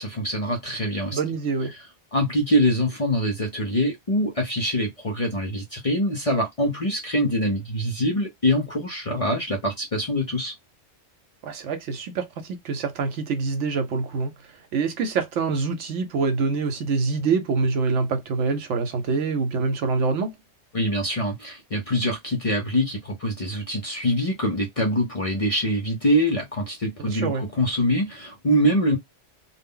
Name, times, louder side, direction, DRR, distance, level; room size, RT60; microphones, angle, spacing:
voice 1, 0.0-1.2 2.1-10.5 20.7-29.0, equal, 45° left, 0.4 m, -24 dB
voice 2, 1.1-1.7 11.4-14.3 14.7-20.4 27.1-27.4, right 4 dB, 90° right, 1.0 m, -25 dB
2.2 x 2.0 x 3.6 m
omnidirectional pair, 1.2 m